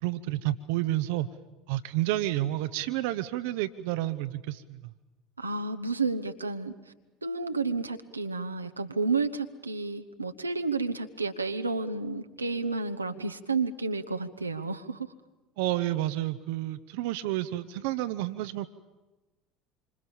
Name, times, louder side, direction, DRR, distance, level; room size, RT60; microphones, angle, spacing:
voice 1, 0.0-1.3 1.7-4.8 15.6-18.7, right 15 dB, 60° right, 12 dB, 0.9 m, -30 dB
voice 2, 5.4-6.7 7.2-15.1, right 4 dB, 85° right, 7 dB, 1.1 m, -31 dB
27.0 x 26.0 x 7.2 m, 1.1 s
figure-of-eight pair, 65°, 0 cm